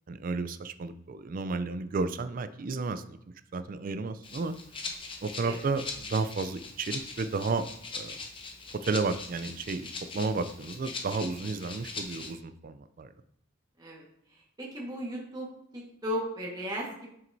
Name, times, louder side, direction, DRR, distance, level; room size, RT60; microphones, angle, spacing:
voice 1, 0.1-3.2 3.5-4.6 5.2-7.7 7.9-8.2 8.7-13.1, right 4 dB, 40° right, 11 dB, 0.4 m, -32 dB
Rattle (instrument), 4.2-12.3, left 4 dB, 25° left, 0.7 m, -41 dB
voice 2, 14.3-15.5 15.7-17.1, equal, 20° right, -4 dB, 1.4 m, -36 dB
7.5 x 5.9 x 2.7 m, 0.72 s
head